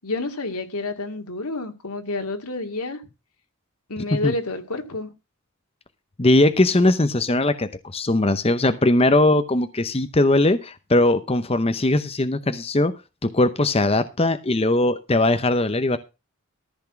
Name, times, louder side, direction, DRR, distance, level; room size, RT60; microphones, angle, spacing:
voice 1, 0.0-3.0 3.9-5.1, left 2 dB, 80° left, 2.2 m, -29 dB
voice 2, 6.2-12.9 13.2-16.0, left 2 dB, 25° left, 0.7 m, -20 dB
14.0 x 5.9 x 5.9 m
head